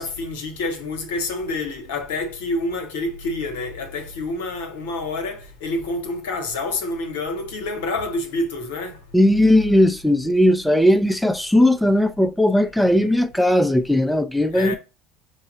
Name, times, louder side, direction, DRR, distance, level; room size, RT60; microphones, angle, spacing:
voice 1, 0.0-9.0 14.5-14.8, left 2 dB, 75° left, 0.8 m, -28 dB
voice 2, 9.1-14.7, left 1 dB, 5° left, 0.4 m, -17 dB
5.4 x 2.0 x 3.7 m
hypercardioid pair, 70°, 0 cm